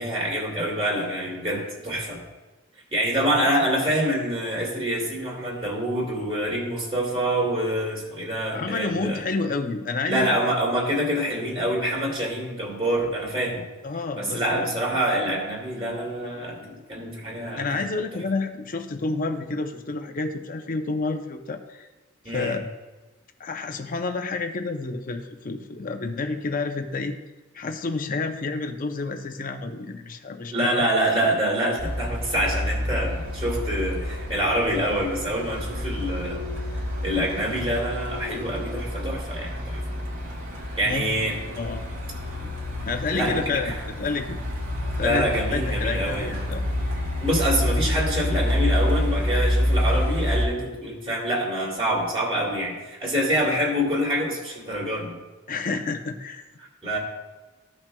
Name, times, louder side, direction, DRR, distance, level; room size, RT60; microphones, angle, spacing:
voice 1, 0.0-2.2 2.9-9.2 10.1-13.6 14.2-17.9 22.2-22.6 30.5-36.4 37.0-39.8 40.8-41.4 43.1-43.8 45.0-46.4 47.2-55.2 56.8-57.0, equal, 25° right, -3 dB, 2.2 m, -26 dB
voice 2, 8.5-10.4 13.8-14.7 17.6-21.9 22.3-22.6 23.4-27.2 27.5-30.7 40.8-41.1 41.6-41.8 42.4-42.5 42.8-44.4 45.0-46.6 55.5-56.4, left 3 dB, 40° left, 6 dB, 0.6 m, -29 dB
Truck, 31.8-50.5, left 1 dB, 65° right, 2.0 m, -28 dB
14.5 x 5.9 x 2.3 m, 1.2 s
head